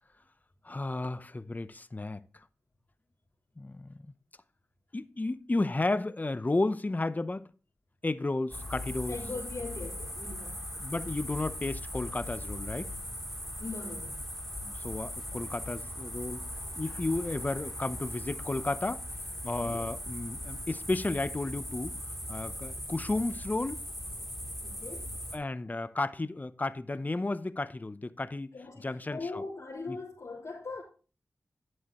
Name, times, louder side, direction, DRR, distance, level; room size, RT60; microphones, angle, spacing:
voice 1, 0.6-2.2 3.6-4.1 4.9-7.5 8.0-9.2 10.8-12.9 14.6-16.5 16.8-19.1 19.4-22.0 22.3-23.8 25.3-29.4 29.9-30.0, left 2 dB, 30° left, 0.7 m, -33 dB
sound 1, 8.5-25.4, left 1 dB, ahead, 3.0 m, -39 dB
voice 2, 9.1-10.6 13.6-14.2 19.5-19.9 24.6-25.1 28.5-30.8, left 3 dB, 70° left, 3.6 m, -40 dB
11.5 x 7.9 x 3.0 m
cardioid pair, 50°, 6 cm